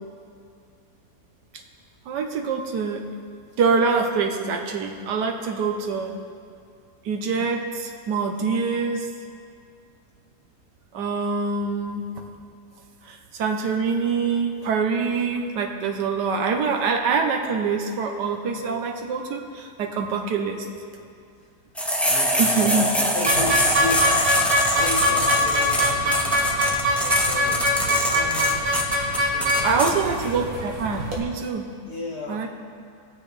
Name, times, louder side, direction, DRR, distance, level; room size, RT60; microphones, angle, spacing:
voice 1, 2.1-3.0 3.6-6.1 7.0-9.1 10.9-12.0 13.1-20.7 22.4-22.8 29.2-29.3 29.6-31.7 32.3-32.5, right 5 dB, 90° right, 4 dB, 1.5 m, -25 dB
sound 1, 21.8-29.9, equal, ahead, 0.4 m, -24 dB
voice 2, 22.0-28.6 29.1-30.5 31.8-32.4, left 2 dB, 75° left, -4 dB, 2.8 m, -34 dB
sound 2, 23.3-31.2, left 1 dB, 60° right, 1.9 m, -23 dB
19.0 x 6.9 x 3.3 m, 2.4 s
omnidirectional pair, 1.7 m